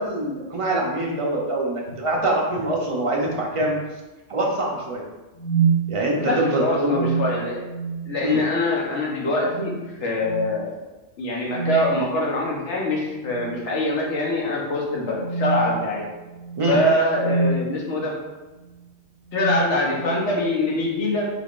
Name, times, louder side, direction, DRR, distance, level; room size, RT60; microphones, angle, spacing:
voice 1, 0.0-3.8 4.3-5.0 5.9-7.1 8.2-8.4 16.6-16.8, right 1 dB, 40° right, -2 dB, 0.4 m, -24 dB
sound 1, 1.9-2.0 2.5-2.7 3.2-3.7 5.3-5.9 6.8-8.1 8.4-8.7 9.4-9.8 10.2-10.5 11.4-12.0 13.2-13.6 14.0-14.2 15.1-17.7 18.6-18.8 19.3-20.3, right 5 dB, 50° left, 1.5 m, -27 dB
voice 2, 6.2-7.6 8.0-10.7 11.2-16.0 16.7-18.1 19.3-21.3, left 1 dB, 70° left, -3 dB, 1.2 m, -24 dB
3.8 x 3.5 x 2.4 m, 1.1 s
omnidirectional pair, 1.2 m